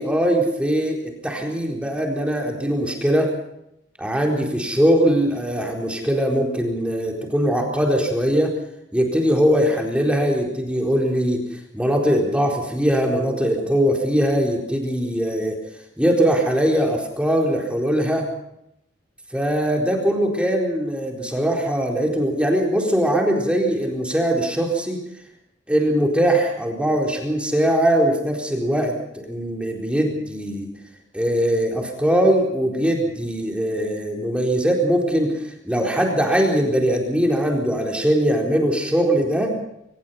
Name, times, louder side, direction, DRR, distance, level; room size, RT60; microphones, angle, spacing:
voice 1, 0.0-3.3 4.0-8.5 8.9-11.4 11.7-15.6 16.0-18.3 19.3-25.0 25.7-30.7 31.1-35.4 35.6-39.5, equal, 5° right, 1 dB, 4.1 m, -21 dB
25.0 x 20.0 x 5.6 m, 0.77 s
head